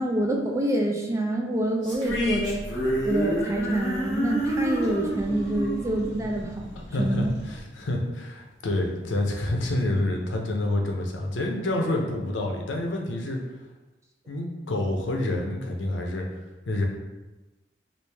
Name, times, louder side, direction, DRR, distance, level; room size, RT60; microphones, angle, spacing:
voice 1, 0.0-2.6 3.1-6.7 7.0-7.3, right 1 dB, 15° right, 0 dB, 0.3 m, -26 dB
sound 1, 1.8-7.2, right 1 dB, 5° left, 1.0 m, -29 dB
sound 2, 2.1-7.6, equal, 70° left, 0.9 m, -41 dB
voice 2, 6.7-13.4 14.3-16.2 16.7-16.8, left 1 dB, 90° left, 1 dB, 0.6 m, -28 dB
3.2 x 2.5 x 3.3 m, 1.1 s
head